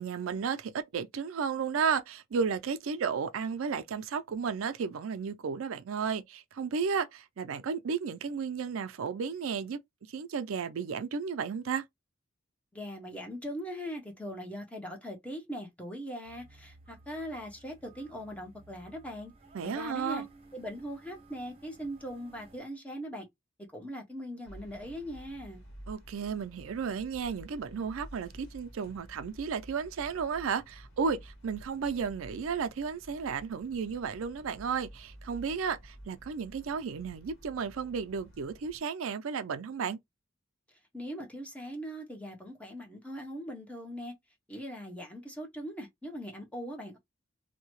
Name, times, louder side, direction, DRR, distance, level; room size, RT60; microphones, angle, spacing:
voice 1, 0.0-9.8 10.1-11.8 19.5-20.3 25.9-40.0, right 6 dB, 90° right, 0.4 m, -33 dB
voice 2, 12.7-19.3 19.6-20.2 20.5-23.3 23.7-25.6 40.9-44.1 44.5-47.0, equal, 5° left, 0.8 m, -40 dB
sound 1, 16.2-22.6, right 2 dB, 30° right, 0.8 m, -57 dB
sound 2, 24.4-38.8, equal, 60° left, 1.2 m, -51 dB
2.7 x 2.2 x 3.0 m
head